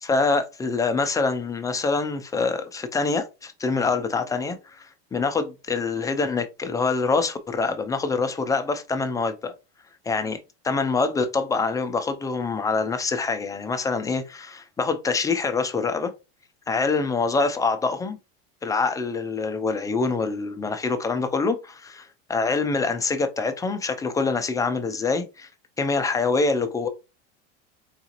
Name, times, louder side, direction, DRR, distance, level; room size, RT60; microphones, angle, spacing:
voice 1, 0.0-9.5 10.1-10.4 10.6-16.1 16.7-18.2 18.6-21.9 22.3-25.5 25.8-26.9, left 4 dB, 10° left, 0.3 m, -25 dB
3.9 x 2.4 x 2.8 m
supercardioid pair, 130°, 31 cm